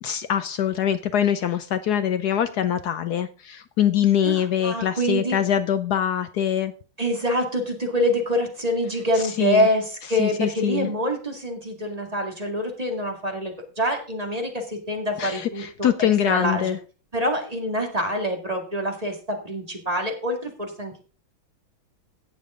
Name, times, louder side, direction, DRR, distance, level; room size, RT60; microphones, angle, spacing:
voice 1, 0.0-6.7 9.1-9.7 10.2-10.9 15.2-16.8, left 9 dB, 70° left, 11 dB, 1.0 m, -23 dB
voice 2, 4.2-5.4 7.0-15.9 16.3-16.7 17.1-21.0, equal, 20° right, 2 dB, 2.0 m, -26 dB
17.0 x 6.9 x 3.7 m, 0.37 s
omnidirectional pair, 2.2 m